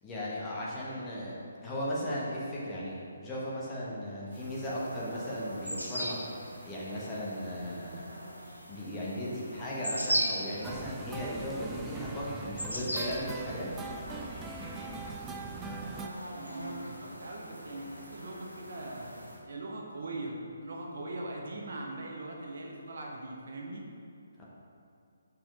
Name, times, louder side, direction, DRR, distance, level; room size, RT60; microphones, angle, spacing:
voice 1, 0.0-8.2 8.7-13.8 24.4-24.5, equal, 15° left, -7 dB, 1.3 m, -37 dB
sound 1, 4.3-19.4, equal, 85° right, 1.5 m, -40 dB
sound 2, 10.6-16.1, right 4 dB, 10° right, 0.3 m, -41 dB
voice 2, 15.4-15.7 16.0-19.2 19.5-23.8, right 2 dB, 50° right, -1 dB, 1.0 m, -41 dB
6.0 x 4.5 x 4.9 m, 2.5 s
figure-of-eight pair, 140°, 0 cm